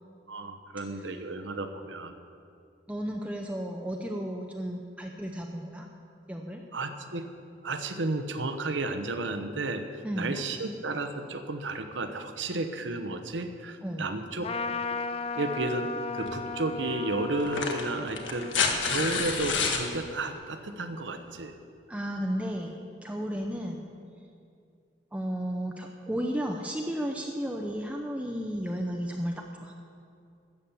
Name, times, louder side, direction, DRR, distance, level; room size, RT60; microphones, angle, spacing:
voice 1, 0.3-2.2 6.7-7.3 7.6-14.5 15.3-21.5, right 2 dB, 80° right, 8 dB, 0.9 m, -33 dB
voice 2, 0.8-1.2 2.9-5.9 6.3-6.6 10.0-10.8 13.8-14.1 21.9-23.8 25.1-29.7, equal, 5° right, 1 dB, 0.6 m, -34 dB
Trumpet, 14.4-20.3, left 4 dB, 30° left, 0.4 m, -36 dB
sound 1, 16.3-16.4 17.4-19.9 21.4-21.5, left 5 dB, 90° left, 1.5 m, -28 dB
13.5 x 8.5 x 7.1 m, 2.5 s
head